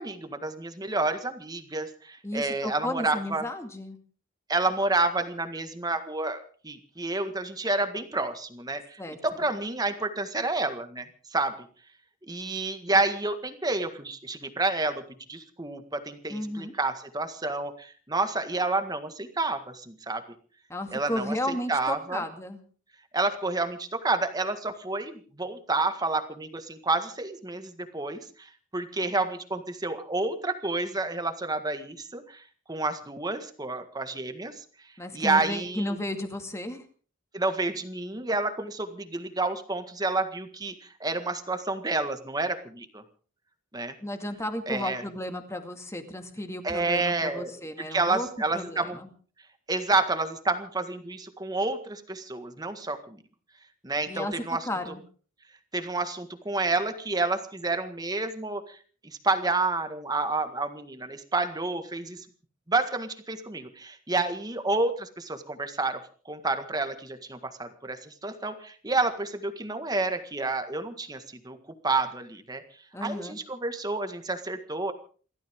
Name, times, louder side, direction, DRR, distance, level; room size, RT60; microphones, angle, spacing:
voice 1, 0.0-3.5 4.5-11.7 12.3-15.0 15.3-20.2 20.9-22.2 23.1-32.4 32.7-34.6 35.1-36.0 37.3-43.0 43.7-43.9 44.7-45.0 46.6-47.5 47.8-49.0 49.7-53.2 53.8-55.0 55.7-58.8 59.0-62.2 62.7-66.0 66.3-71.6 71.8-72.6 73.0-74.9, right 3 dB, 20° right, 8 dB, 1.7 m, -29 dB
voice 2, 2.2-4.0 9.0-9.2 16.3-16.7 20.7-22.6 35.0-36.8 44.0-48.3 48.5-49.1 54.1-54.3 54.7-55.0 72.9-73.4, left 1 dB, 15° left, 6 dB, 2.2 m, -33 dB
29.0 x 13.0 x 3.7 m, 0.41 s
head